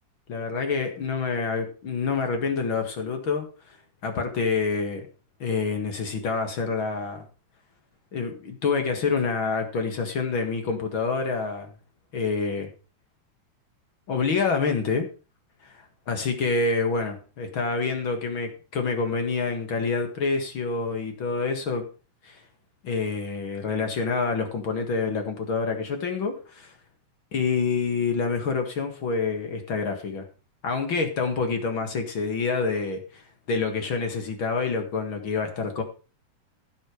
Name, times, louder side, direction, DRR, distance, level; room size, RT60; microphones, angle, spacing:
voice 1, 0.3-3.8 4.0-5.1 5.4-7.3 8.1-11.7 12.1-12.7 14.1-15.1 15.6-21.9 22.2-22.4 22.8-26.7 27.3-30.3 30.6-35.8, left 4 dB, 45° left, 5 dB, 2.2 m, -27 dB
16.0 x 6.3 x 4.9 m, 0.34 s
omnidirectional pair, 3.5 m